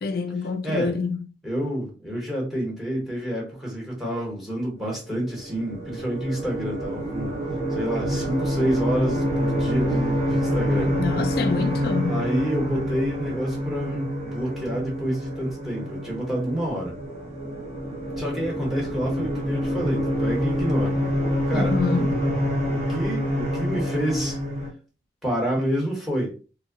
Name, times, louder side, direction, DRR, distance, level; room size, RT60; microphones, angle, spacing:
voice 1, 0.0-1.2 11.0-12.2 21.5-22.2, left 4 dB, 55° left, 0.4 m, -26 dB
voice 2, 0.6-0.9 1.4-7.4 7.7-11.0 12.1-17.0 18.2-21.0 21.5-21.8 22.6-24.4 25.2-26.3, equal, ahead, 0.9 m, -28 dB
sound 1, 5.2-24.7, equal, 35° right, 0.7 m, -27 dB
2.1 x 2.0 x 3.6 m
head